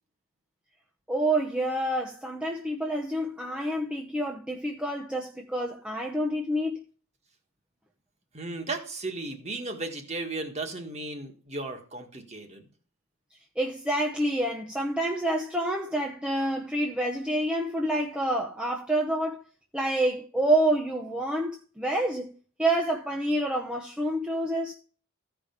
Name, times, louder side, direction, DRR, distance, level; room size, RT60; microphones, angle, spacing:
voice 1, 1.1-6.8 13.6-19.4 19.7-24.7, right 1 dB, 5° right, 0.7 m, -28 dB
voice 2, 8.3-12.6, right 2 dB, 30° right, 1.6 m, -35 dB
14.5 x 5.1 x 5.1 m
head